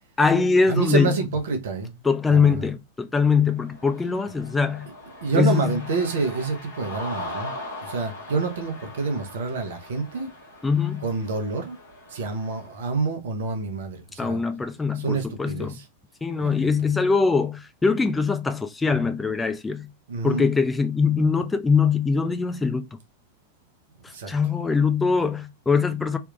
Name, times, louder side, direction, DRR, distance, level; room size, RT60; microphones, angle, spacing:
voice 1, 0.2-1.2 2.0-4.9 5.3-5.7 10.6-11.1 14.2-15.8 16.2-19.9 20.2-22.9 24.3-26.2, left 5 dB, 10° left, 0.4 m, -22 dB
voice 2, 0.7-1.9 2.3-2.6 5.2-7.5 7.8-10.3 11.0-11.8 12.1-14.4 15.0-15.7 16.4-16.7 20.1-20.5 24.1-24.3, right 4 dB, 60° right, 0.9 m, -27 dB
Cheering, 3.5-12.8, left 1 dB, 70° left, 1.5 m, -40 dB
3.4 x 3.0 x 2.4 m
figure-of-eight pair, 90°, 0 cm